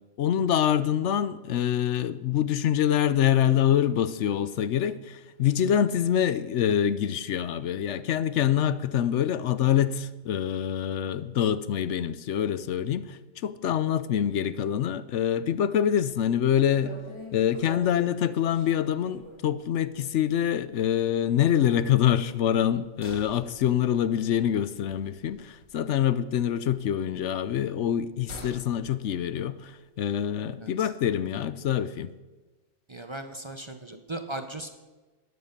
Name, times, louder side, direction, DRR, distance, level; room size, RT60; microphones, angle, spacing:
voice 1, 0.2-17.0 17.3-32.1, left 10 dB, 70° left, 0.9 m, -25 dB
sound 1, 15.9-16.2 16.5-16.6 16.8-19.5 19.9-20.1 20.4-20.5 22.1-26.0 26.3-28.7 29.0-29.1, equal, 25° left, 3.2 m, -46 dB
voice 2, 32.9-34.7, right 2 dB, 25° right, 0.8 m, -37 dB
12.5 x 9.7 x 6.6 m
omnidirectional pair, 1.3 m